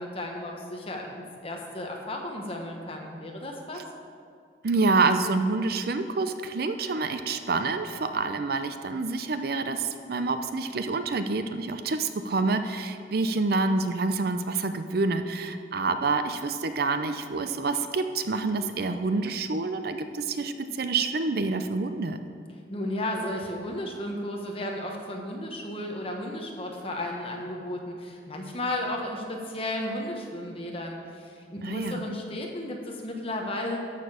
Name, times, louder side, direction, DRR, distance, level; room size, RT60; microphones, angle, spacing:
voice 1, 0.0-3.8 22.7-33.8, left 1 dB, 30° left, 1 dB, 1.3 m, -34 dB
voice 2, 4.6-22.2 31.6-32.0, right 3 dB, 55° right, 9 dB, 0.5 m, -27 dB
13.0 x 6.7 x 5.0 m, 2.3 s
head